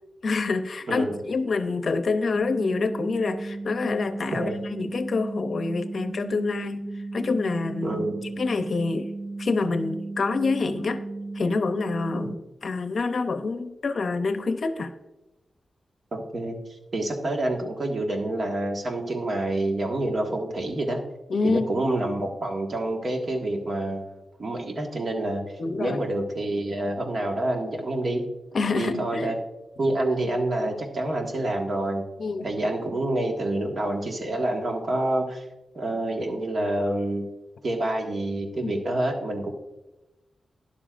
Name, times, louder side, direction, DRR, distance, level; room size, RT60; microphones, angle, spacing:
voice 1, 0.2-6.8 7.1-8.0 8.4-9.1 9.4-11.1 11.3-12.3 12.6-14.9 21.3-21.7 25.6-26.0 28.5-29.3 32.2-32.5 38.6-38.7, left 4 dB, 60° left, 9 dB, 0.7 m, -27 dB
voice 2, 0.9-1.2 4.3-4.7 7.8-8.2 16.1-21.0 21.4-28.2 28.7-29.4 29.8-32.0 32.4-35.4 35.7-37.3 37.6-39.5, right 1 dB, 50° right, 2 dB, 1.6 m, -27 dB
sound 1, 2.3-12.4, right 2 dB, 85° right, 3.4 m, -35 dB
12.5 x 10.5 x 2.5 m, 1.0 s
wide cardioid pair, 125°, 0 cm